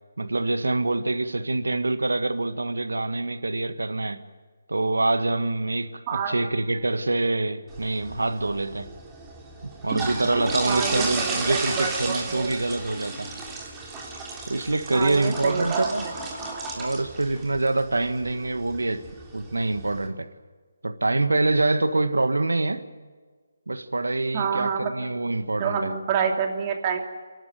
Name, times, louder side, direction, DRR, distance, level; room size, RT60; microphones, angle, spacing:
voice 1, 0.2-4.2 4.7-8.9 9.6-13.3 14.5-16.0 16.8-19.0 19.3-20.3 20.8-22.8 23.7-25.9, right 2 dB, 85° right, 11 dB, 1.5 m, -25 dB
sound 1, 7.7-20.1, right 3 dB, 10° right, 3.3 m, -34 dB
voice 2, 10.7-12.5 14.9-15.9 24.3-24.9 25.6-27.0, right 6 dB, 30° right, 3 dB, 2.8 m, -27 dB
28.5 x 12.0 x 9.3 m, 1.5 s
figure-of-eight pair, 155°, 0 cm